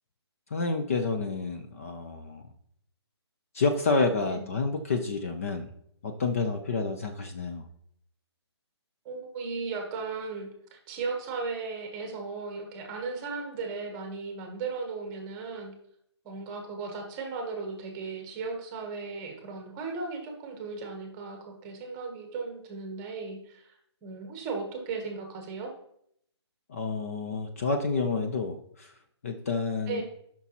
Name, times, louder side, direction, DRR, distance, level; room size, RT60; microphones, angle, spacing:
voice 1, 0.5-2.4 3.5-5.7 6.0-7.7 26.7-28.9 29.2-30.0, left 4 dB, 30° left, 5 dB, 0.5 m, -29 dB
voice 2, 4.3-4.6 9.0-15.8 16.2-23.7 24.0-25.7 29.9-30.0, right 4 dB, 15° right, 3 dB, 1.0 m, -36 dB
12.5 x 5.9 x 2.9 m, 0.70 s
hypercardioid pair, 170°, 15 cm